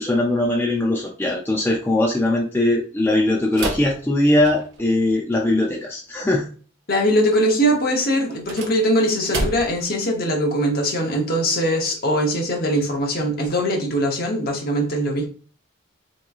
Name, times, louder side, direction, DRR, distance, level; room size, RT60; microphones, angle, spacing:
voice 1, 0.0-6.5, left 1 dB, 10° left, -1 dB, 0.3 m, -20 dB
Hyacinthe door with push bar edited, 3.5-4.9 8.2-9.9, right 2 dB, 55° right, 0.7 m, -30 dB
voice 2, 6.9-15.3, equal, 45° left, 1 dB, 0.8 m, -21 dB
3.5 x 2.9 x 2.3 m, 0.40 s
head